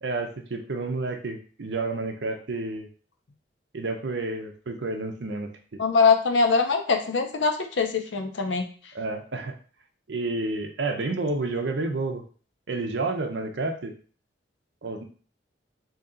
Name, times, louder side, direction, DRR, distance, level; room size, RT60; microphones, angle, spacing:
voice 1, 0.0-2.9 3.7-5.5 8.9-9.5 10.1-12.2 12.7-13.9 14.8-15.0, right 3 dB, 70° right, 5 dB, 0.6 m, -30 dB
voice 2, 5.8-8.6, left 4 dB, 80° left, 6 dB, 0.5 m, -22 dB
2.8 x 2.7 x 3.7 m, 0.41 s
head